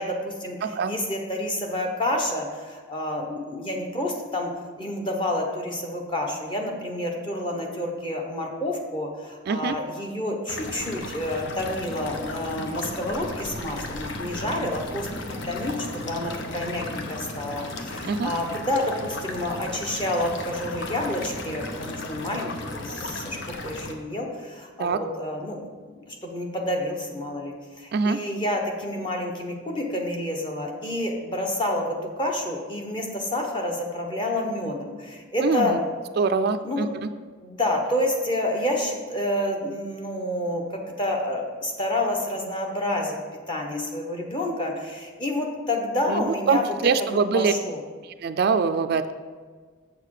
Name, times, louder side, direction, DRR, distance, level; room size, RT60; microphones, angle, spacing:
voice 1, 0.0-0.6 0.8-4.5 4.8-25.6 25.9-35.8 36.6-36.9 37.4-43.2 43.5-46.7 47.0-47.8, left 1 dB, 25° left, 1 dB, 1.1 m, -29 dB
voice 2, 0.6-1.0 9.5-9.8 18.0-18.3 24.8-25.0 27.9-28.2 35.4-35.8 36.2-37.1 46.1-47.5 48.2-49.1, right 5 dB, 50° right, 10 dB, 0.3 m, -23 dB
sound 1, 10.5-23.9, left 2 dB, 60° left, 0.9 m, -35 dB
7.4 x 6.6 x 4.8 m, 1.5 s
head